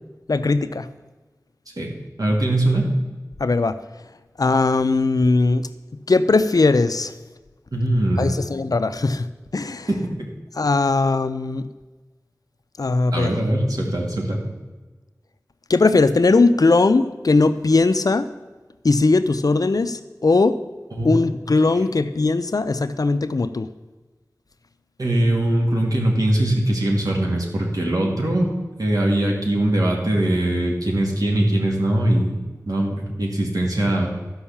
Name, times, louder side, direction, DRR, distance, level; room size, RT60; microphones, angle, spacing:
voice 1, 0.3-0.9 3.4-3.8 4.4-5.7 6.1-7.1 8.2-9.3 9.5-9.9 10.6-11.6 12.8-13.3 15.7-18.2 18.8-20.5 21.0-23.7, left 3 dB, 70° left, 12 dB, 0.6 m, -19 dB
voice 2, 2.2-2.9 7.7-8.3 9.9-10.0 13.1-14.5 20.9-21.3 25.0-28.5 28.8-32.4 32.7-34.1, right 1 dB, 70° right, -1 dB, 2.4 m, -21 dB
13.0 x 5.5 x 7.2 m, 1.2 s
wide cardioid pair, 50°, 7 cm